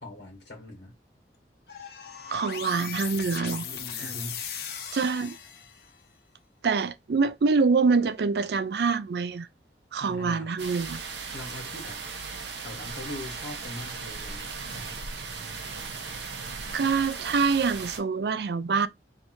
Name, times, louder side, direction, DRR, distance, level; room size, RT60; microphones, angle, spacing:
voice 1, 0.0-0.9 4.0-4.4 10.0-10.6 11.3-12.0 12.6-15.0, left 1 dB, 90° left, 1.6 m, -41 dB
sound 1, 1.7-6.0, left 7 dB, 60° left, 0.8 m, -38 dB
voice 2, 2.3-3.7 4.9-5.4 6.6-9.5 9.9-11.0 16.7-18.9, right 4 dB, 65° right, 0.4 m, -25 dB
sound 2, 10.6-18.0, right 4 dB, 85° right, 0.9 m, -37 dB
3.5 x 2.7 x 4.6 m
head